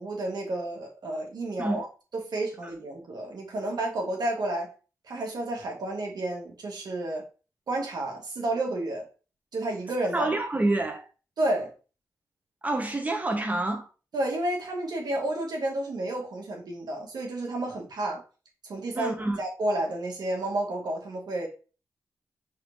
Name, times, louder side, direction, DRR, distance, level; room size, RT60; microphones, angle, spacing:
voice 1, 0.0-1.9 2.1-4.7 5.1-7.2 7.7-9.1 9.5-10.3 11.4-11.7 14.1-18.2 18.6-21.5, right 1 dB, 75° right, 1.3 m, -31 dB
voice 2, 10.1-11.1 12.6-13.9 18.9-19.4, right 2 dB, 20° right, 0.9 m, -27 dB
4.4 x 3.7 x 2.5 m
cardioid pair, 45°, 7 cm